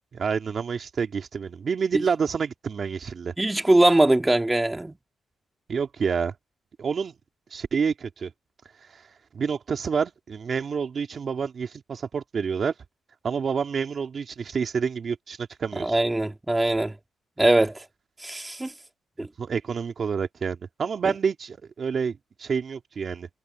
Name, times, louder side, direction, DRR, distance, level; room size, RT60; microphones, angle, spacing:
voice 1, 0.1-3.3 5.7-6.3 6.8-7.1 7.5-8.3 8.9-9.0 9.3-12.7 13.2-16.0 19.4-23.3, right 6 dB, 45° right, 2.5 m, -28 dB
voice 2, 3.4-5.0 15.8-17.0 17.4-17.8 18.2-18.7 19.2-19.3, right 1 dB, 10° right, 2.1 m, -21 dB
cardioid pair, 115°, 0 cm